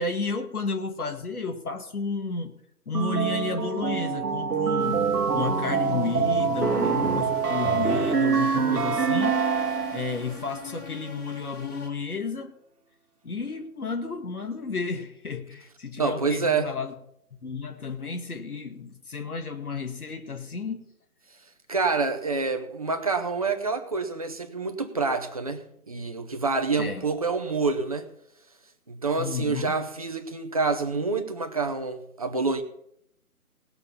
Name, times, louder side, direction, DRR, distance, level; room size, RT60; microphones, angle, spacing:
voice 1, 0.0-2.5 2.9-5.0 5.3-9.4 9.9-12.5 13.2-16.9 17.4-20.8 26.8-27.0 29.2-29.8, left 4 dB, 70° left, 6 dB, 1.9 m, -32 dB
sound 1, 2.9-10.2, right 6 dB, 85° right, 1.1 m, -25 dB
sound 2, 4.8-11.9, left 7 dB, 20° left, 3.4 m, -43 dB
voice 2, 16.0-16.7 21.7-28.1 28.9-32.6, right 4 dB, 25° right, 6 dB, 0.7 m, -27 dB
18.5 x 6.8 x 5.8 m, 0.75 s
figure-of-eight pair, 155°, 45 cm